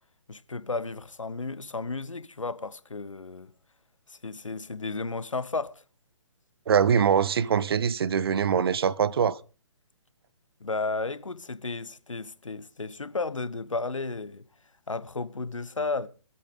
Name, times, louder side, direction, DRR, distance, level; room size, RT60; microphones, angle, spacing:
voice 1, 0.3-3.5 4.1-5.8 10.6-14.4 14.9-16.1, left 3 dB, 85° left, 1.0 m, -33 dB
voice 2, 6.7-9.4, right 7 dB, 50° right, 0.6 m, -23 dB
24.0 x 8.3 x 3.6 m
figure-of-eight pair, 140°, 16 cm